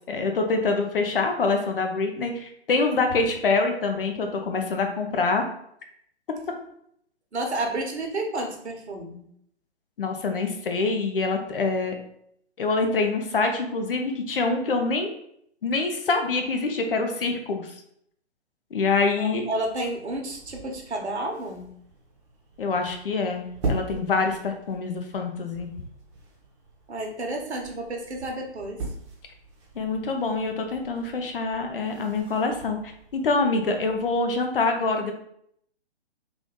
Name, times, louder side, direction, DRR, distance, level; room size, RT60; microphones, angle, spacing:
voice 1, 0.1-5.4 10.0-12.0 12.6-15.1 15.6-17.7 18.7-19.4 22.6-25.7 29.8-32.8 33.1-35.1, left 3 dB, 55° left, 5 dB, 0.8 m, -25 dB
voice 2, 7.3-9.2 19.2-21.7 26.9-28.8, right 2 dB, 75° right, 2 dB, 1.0 m, -31 dB
sound 1, 19.6-34.4, right 2 dB, 25° right, 0.9 m, -40 dB
3.4 x 2.6 x 3.7 m, 0.70 s
figure-of-eight pair, 135°, 33 cm